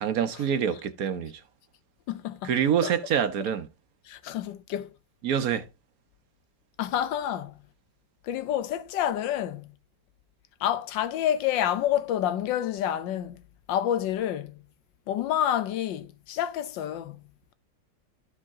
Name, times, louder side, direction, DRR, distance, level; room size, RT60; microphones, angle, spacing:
voice 1, 0.0-1.3 2.4-3.7 5.2-5.7, right 8 dB, 60° right, 1.0 m, -26 dB
voice 2, 2.1-2.5 2.8-2.9 4.1-4.9 6.8-7.5 8.2-9.6 10.6-13.4 13.7-14.5 15.1-17.2, left 11 dB, 75° left, 1.5 m, -28 dB
12.0 x 5.1 x 3.5 m
omnidirectional pair, 2.0 m